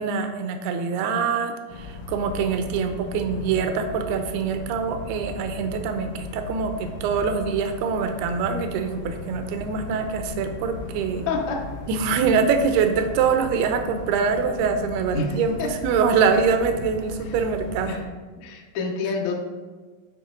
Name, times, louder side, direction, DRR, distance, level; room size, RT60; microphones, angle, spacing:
voice 1, 0.0-11.3 11.9-18.0, right 5 dB, 80° right, 6 dB, 2.6 m, -24 dB
sound 1, 1.7-18.1, left 4 dB, 90° left, 3.1 m, -37 dB
voice 2, 18.4-19.4, left 4 dB, 75° left, -1 dB, 1.7 m, -27 dB
9.5 x 4.4 x 3.8 m, 1.4 s
omnidirectional pair, 4.6 m